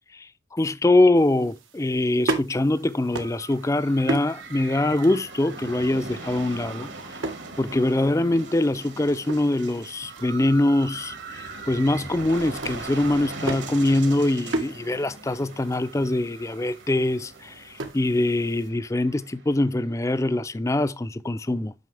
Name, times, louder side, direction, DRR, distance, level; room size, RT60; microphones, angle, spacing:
voice 1, 0.1-6.9 7.6-21.7, left 2 dB, 15° left, 0.4 m, -23 dB
sound 1, 1.1-18.7, right 2 dB, 90° right, 1.5 m, -37 dB
sound 2, 2.7-20.4, right 3 dB, 70° right, 1.9 m, -41 dB
9.2 x 6.0 x 3.3 m
head